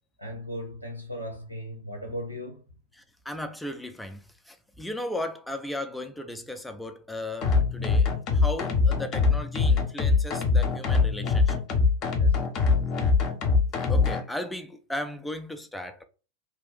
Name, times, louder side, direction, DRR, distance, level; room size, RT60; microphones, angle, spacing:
voice 1, 0.2-2.6 12.2-12.5, equal, 90° right, 0.9 m, -37 dB
voice 2, 2.9-11.6 12.0-12.1 13.9-16.1, left 1 dB, 5° left, 0.4 m, -36 dB
sound 1, 7.4-14.2, left 4 dB, 35° left, 0.8 m, -23 dB
2.8 x 2.4 x 3.9 m
figure-of-eight pair, 90°, 0 cm